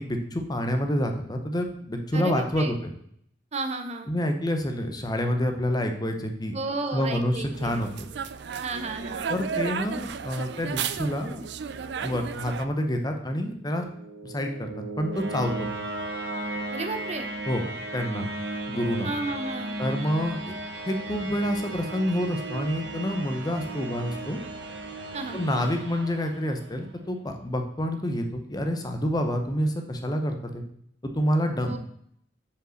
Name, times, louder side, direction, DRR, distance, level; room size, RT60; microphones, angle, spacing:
voice 1, 0.0-2.7 4.1-6.5 6.9-7.9 9.3-11.4 12.0-13.9 14.2-14.7 15.0-15.7 17.5-17.6 17.9-18.3 18.7-19.1 19.8-20.5 20.9-24.4 25.3-30.6 31.0-31.8, equal, 20° left, 5 dB, 0.8 m, -28 dB
voice 2, 2.1-2.7 3.5-4.1 6.5-7.8 8.6-9.3 16.7-17.3 19.0-19.7 25.1-25.4 31.7-31.8, right 3 dB, 40° right, 7 dB, 0.7 m, -33 dB
sound 1, 7.5-12.7, right 6 dB, 65° right, 0.4 m, -33 dB
sound 2, 13.8-26.8, right 2 dB, 85° right, 1.0 m, -35 dB
5.3 x 5.2 x 6.3 m, 0.67 s
head